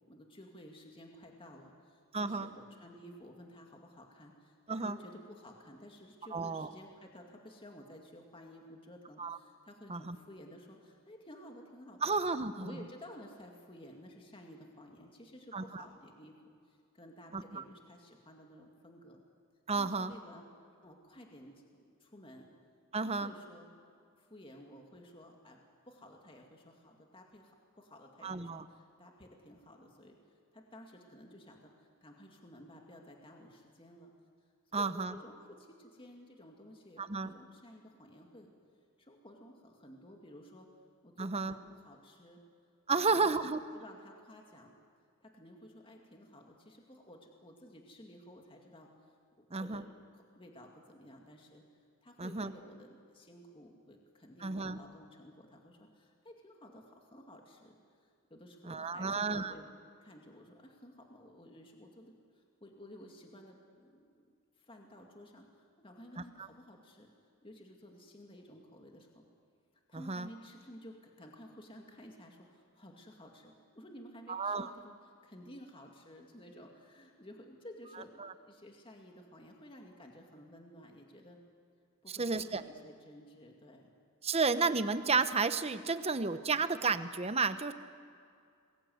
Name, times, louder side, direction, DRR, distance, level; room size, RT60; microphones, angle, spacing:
voice 1, 0.1-12.1 12.6-19.2 19.8-20.5 20.8-22.5 23.0-23.7 24.2-30.2 30.5-34.1 34.7-38.5 39.0-40.7 41.0-42.4 42.9-44.7 45.2-48.9 49.4-51.6 52.0-59.7 60.0-64.3 64.6-67.1 67.4-69.2 69.9-74.9 75.2-81.4 82.0-83.9, equal, 25° left, 1 dB, 2.3 m, -54 dB
voice 2, 2.1-2.5 4.7-5.0 6.3-6.7 9.2-9.4 9.9-10.2 12.0-12.8 15.5-15.8 17.3-17.6 19.7-20.1 22.9-23.3 28.2-28.6 34.7-35.1 37.0-37.3 41.2-41.6 42.9-43.6 49.5-49.8 52.2-52.5 54.4-54.8 58.7-59.5 69.9-70.3 74.3-74.7 78.2-78.3 82.1-82.6 84.2-87.7, right 4 dB, 30° right, 11 dB, 1.0 m, -32 dB
27.5 x 21.5 x 8.0 m, 2.3 s
head